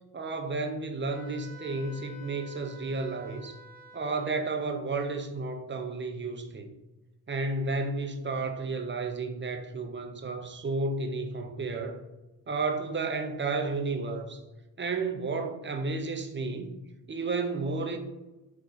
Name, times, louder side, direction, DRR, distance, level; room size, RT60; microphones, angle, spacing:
voice 1, 0.1-3.5 3.9-6.7 7.3-12.0 12.5-14.4 14.8-16.7 17.1-18.0, right 3 dB, 25° right, 4 dB, 0.5 m, -32 dB
Wind instrument woodwind instrument, 1.1-4.5, left 2 dB, 80° left, 0.9 m, -50 dB
3.4 x 3.0 x 2.6 m, 1.0 s
supercardioid pair, 50°, 45 cm